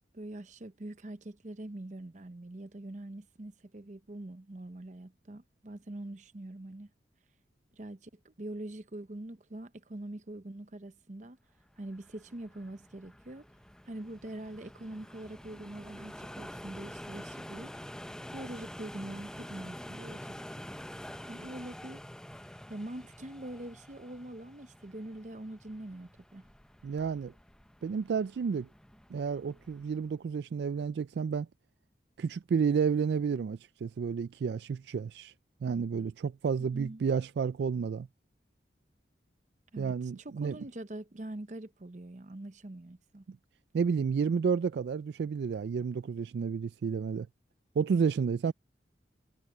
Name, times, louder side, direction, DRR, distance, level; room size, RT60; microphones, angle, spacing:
voice 1, 0.1-6.9 7.8-11.4 11.8-13.4 13.9-17.7 18.3-20.6 21.3-22.0 22.7-26.4 36.5-37.0 39.7-43.2 48.5-48.6, right 1 dB, 40° right, 0.8 m, -44 dB
sound 1, 11.8-30.1, equal, 5° left, 0.5 m, -47 dB
voice 2, 26.8-27.3 27.8-28.7 29.1-31.5 32.2-35.3 35.6-38.1 39.8-40.6 43.7-47.3 47.8-48.5, right 6 dB, 65° right, 0.3 m, -31 dB
head